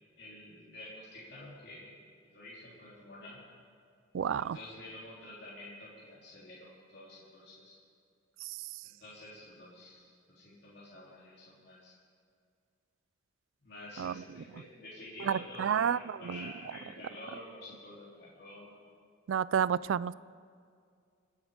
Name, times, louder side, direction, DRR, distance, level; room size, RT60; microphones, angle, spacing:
voice 1, 0.1-1.9 2.2-3.4 4.4-7.8 8.8-11.9 13.6-18.7, left 1 dB, 55° left, -8 dB, 3.7 m, -49 dB
voice 2, 4.1-4.6 8.4-8.8 14.0-14.2 15.2-16.5 19.3-20.1, right 8 dB, 75° right, 20 dB, 0.3 m, -31 dB
26.5 x 9.6 x 5.2 m, 2.3 s
head